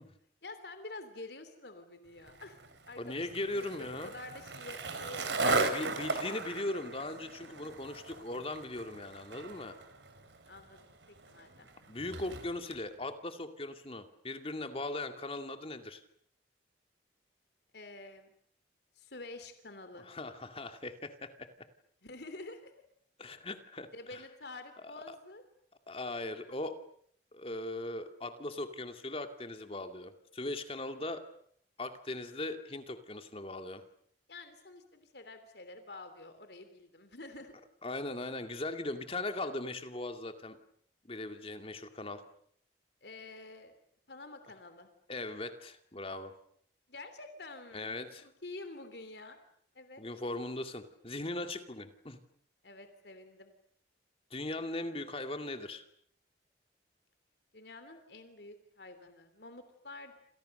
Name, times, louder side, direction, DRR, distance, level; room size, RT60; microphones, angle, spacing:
voice 1, 0.4-6.6 10.5-11.7 17.7-18.3 18.9-20.1 22.0-22.7 23.9-25.4 34.3-37.5 43.0-43.8 44.1-44.9 46.9-48.0 48.2-49.4 49.7-50.0 52.6-53.5 57.5-60.1, left 2 dB, 65° left, 9 dB, 3.1 m, -48 dB
Skateboard, 2.3-12.8, right 3 dB, 85° right, 4.0 m, -37 dB
voice 2, 3.0-4.1 5.4-9.8 11.9-16.0 20.1-21.5 23.2-24.2 25.1-25.2 25.9-26.8 27.3-31.2 31.8-33.8 37.8-40.6 41.0-42.2 45.1-46.3 47.7-48.2 50.0-52.2 54.3-55.8, left 2 dB, 30° left, 7 dB, 2.3 m, -39 dB
29.0 x 28.0 x 6.7 m, 0.63 s
head